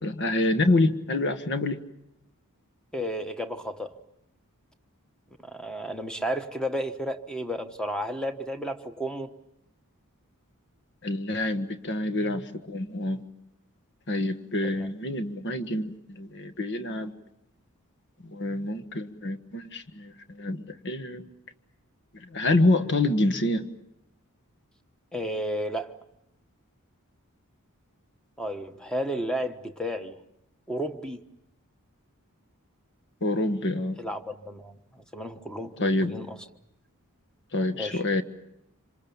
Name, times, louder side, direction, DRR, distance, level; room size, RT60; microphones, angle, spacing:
voice 1, 0.0-1.8 11.0-13.2 14.1-17.1 18.2-21.3 22.1-23.7 33.2-34.0 35.8-36.1 37.5-38.2, left 2 dB, 55° left, 10 dB, 1.5 m, -27 dB
voice 2, 2.9-4.0 5.4-9.3 14.6-14.7 25.1-25.9 28.4-30.2 30.7-31.2 34.0-36.4 37.7-38.0, equal, 5° left, 7 dB, 1.2 m, -32 dB
26.5 x 26.0 x 7.2 m, 0.81 s
head